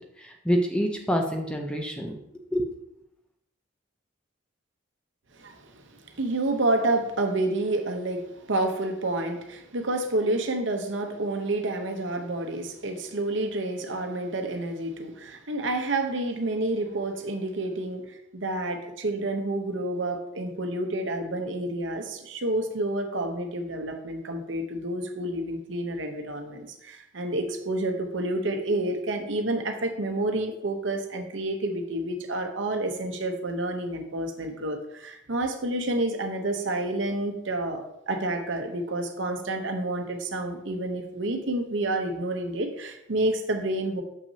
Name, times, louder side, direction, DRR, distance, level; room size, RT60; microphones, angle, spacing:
voice 1, 0.2-2.2 2.5-2.7, equal, 5° left, 2 dB, 0.5 m, -27 dB
voice 2, 5.4-5.8 6.2-8.2 8.5-44.0, right 2 dB, 70° right, 5 dB, 0.9 m, -29 dB
6.7 x 5.9 x 2.8 m, 0.81 s
head